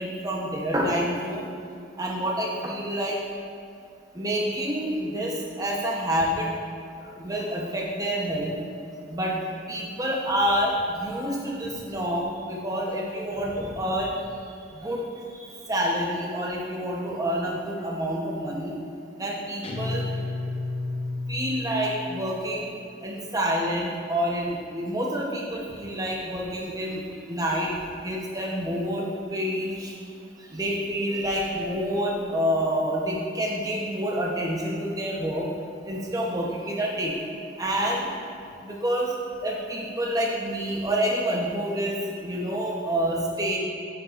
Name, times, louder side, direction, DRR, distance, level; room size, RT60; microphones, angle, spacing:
voice 1, 0.0-1.4 2.0-3.1 4.1-6.5 7.2-8.5 9.1-9.4 9.7-10.7 11.0-14.2 14.8-15.0 15.7-18.7 19.2-20.0 21.3-22.7 23.0-27.7 28.0-29.9 30.5-35.5 35.9-37.1 37.6-38.0 38.6-39.1 39.4-43.6, equal, 15° right, -2 dB, 0.9 m, -28 dB
Guitar, 19.6-22.2, left 2 dB, 30° left, 0.6 m, -31 dB
8.3 x 8.2 x 2.5 m, 2.3 s
head